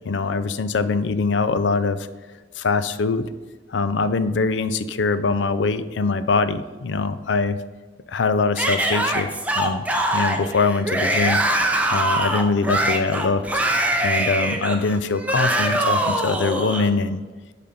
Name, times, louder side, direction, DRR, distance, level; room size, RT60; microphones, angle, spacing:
voice 1, 0.1-2.1 2.6-3.3 3.7-7.6 8.1-9.3 9.6-9.9 10.1-11.4 11.9-13.5 14.0-17.2, left 4 dB, 70° left, 13 dB, 0.5 m, -23 dB
Yell / Screaming, 8.6-16.9, right 1 dB, 10° right, 0.9 m, -23 dB
11.0 x 4.2 x 5.1 m, 1.4 s
head